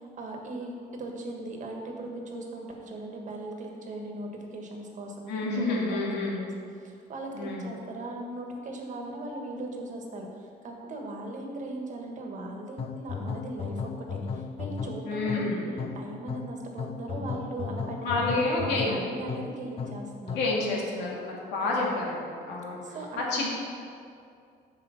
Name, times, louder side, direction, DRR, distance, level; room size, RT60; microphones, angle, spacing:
voice 1, 0.2-6.5 6.8-20.4 21.6-21.9 22.8-23.5, right 2 dB, 45° right, 1 dB, 1.5 m, -39 dB
voice 2, 5.3-6.4 7.3-7.6 15.0-15.7 18.0-19.0 20.3-23.0 23.3-23.5, left 2 dB, 90° left, -3 dB, 2.0 m, -29 dB
sound 1, 12.8-20.6, left 5 dB, 35° left, 0.4 m, -36 dB
6.9 x 5.0 x 7.1 m, 2.4 s
cardioid pair, 110°, 17 cm